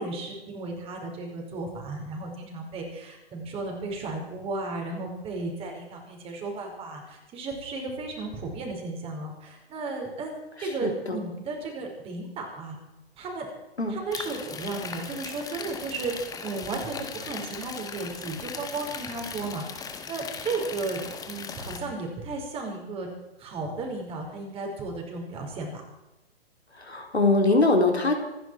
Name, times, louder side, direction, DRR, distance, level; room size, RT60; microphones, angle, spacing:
voice 1, 0.0-12.7 13.2-13.5 13.9-16.1 16.4-21.0 21.3-23.1 23.4-25.8, right 3 dB, 20° right, 1 dB, 5.1 m, -34 dB
voice 2, 10.8-11.2 13.8-13.9 26.8-28.1, left 2 dB, 85° left, 3 dB, 4.0 m, -22 dB
sound 1, 14.1-21.8, left 6 dB, 10° left, 1.8 m, -38 dB
26.5 x 11.5 x 4.6 m, 0.99 s
figure-of-eight pair, 125°, 32 cm